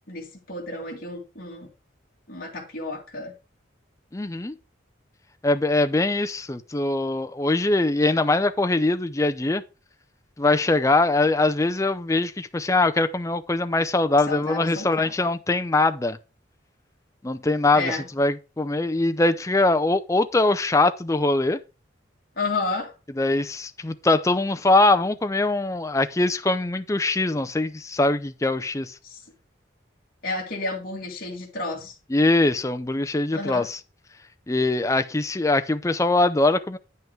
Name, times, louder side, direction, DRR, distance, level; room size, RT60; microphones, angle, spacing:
voice 1, 0.1-1.7 2.3-3.3 14.3-15.1 17.7-18.1 22.4-22.9 29.0-29.2 30.2-32.0 33.3-33.7, left 3 dB, 45° left, 2.1 m, -31 dB
voice 2, 4.1-4.5 5.4-9.6 10.4-16.2 17.2-21.6 23.2-29.0 32.1-33.8 34.5-36.8, left 2 dB, 15° left, 0.5 m, -22 dB
9.2 x 5.7 x 4.5 m
head